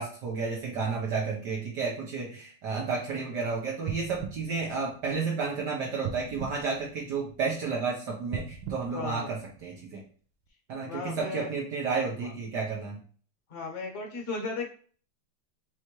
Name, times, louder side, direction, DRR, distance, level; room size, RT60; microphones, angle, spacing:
voice 1, 0.0-10.0 10.7-13.0, right 4 dB, 65° right, -3 dB, 1.3 m, -32 dB
sound 1, 3.8-5.5 6.0-7.6 8.2-9.9 10.5-10.6, right 8 dB, 80° right, 1.4 m, -39 dB
voice 2, 8.9-9.3 10.8-11.5 12.1-12.3 13.5-14.7, left 3 dB, 40° left, 0 dB, 1.2 m, -35 dB
4.4 x 3.4 x 3.0 m, 0.44 s
omnidirectional pair, 2.3 m